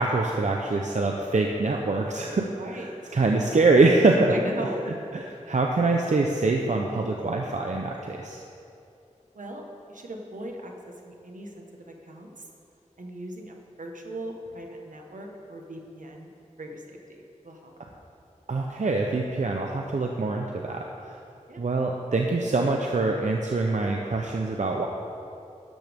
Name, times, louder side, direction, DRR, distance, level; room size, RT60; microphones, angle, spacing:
voice 1, 0.0-2.5 3.1-4.3 5.5-8.4 18.5-20.8 21.6-24.9, right 3 dB, 70° right, 1 dB, 0.7 m, -24 dB
voice 2, 2.6-2.9 4.3-5.3 9.3-9.6 9.9-10.7 11.0-12.5 13.0-16.3 16.6-17.7 21.5-21.6, right 1 dB, 85° right, 1 dB, 1.4 m, -38 dB
12.5 x 11.5 x 3.6 m, 2.6 s
wide cardioid pair, 70°, 13 cm